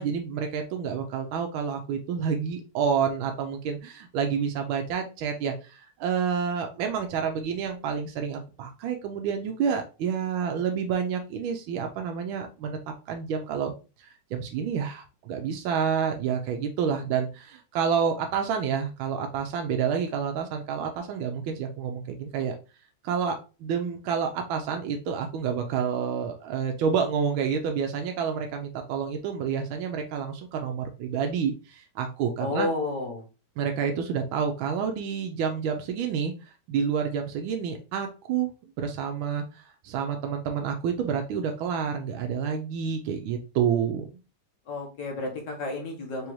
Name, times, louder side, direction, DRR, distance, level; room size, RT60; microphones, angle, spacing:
voice 1, 0.0-12.8 13.1-13.7 14.0-22.5 23.0-32.7 33.6-38.5 38.8-44.1, right 7 dB, 85° right, 4 dB, 1.4 m, -29 dB
voice 2, 32.4-33.3 44.7-46.3, left 2 dB, 60° left, 1 dB, 1.7 m, -31 dB
4.9 x 3.0 x 3.0 m, 0.31 s
omnidirectional pair, 2.2 m